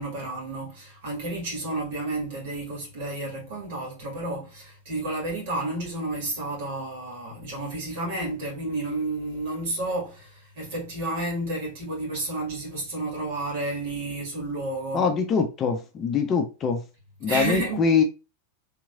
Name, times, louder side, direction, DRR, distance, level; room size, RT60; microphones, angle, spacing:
voice 1, 0.0-15.1 17.2-17.8, right 2 dB, 55° right, 1.8 m, -31 dB
voice 2, 14.9-16.8 17.2-18.0, left 5 dB, 30° left, 0.5 m, -23 dB
3.6 x 3.0 x 2.4 m
figure-of-eight pair, 90°, 0 cm